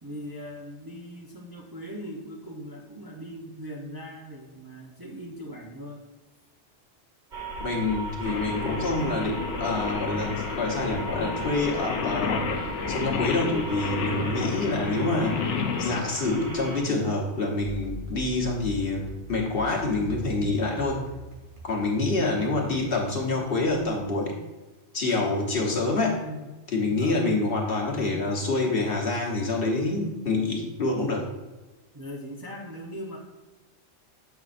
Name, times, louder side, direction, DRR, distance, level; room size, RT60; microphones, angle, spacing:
voice 1, 0.0-6.0 26.2-26.5 26.8-27.2 31.9-33.2, equal, 25° right, -2 dB, 0.6 m, -40 dB
sound 1, 7.3-16.8, right 2 dB, 45° right, 1.6 m, -36 dB
voice 2, 7.6-12.5 12.9-15.4 15.8-21.1 21.6-24.3 24.9-26.2 26.7-31.2, left 2 dB, 55° left, -1 dB, 1.3 m, -27 dB
Singing, 8.3-16.0, left 6 dB, 85° left, 0.9 m, -31 dB
sound 2, 17.6-23.9, right 1 dB, 80° right, 2.0 m, -42 dB
7.5 x 5.7 x 2.5 m, 1.1 s
omnidirectional pair, 1.2 m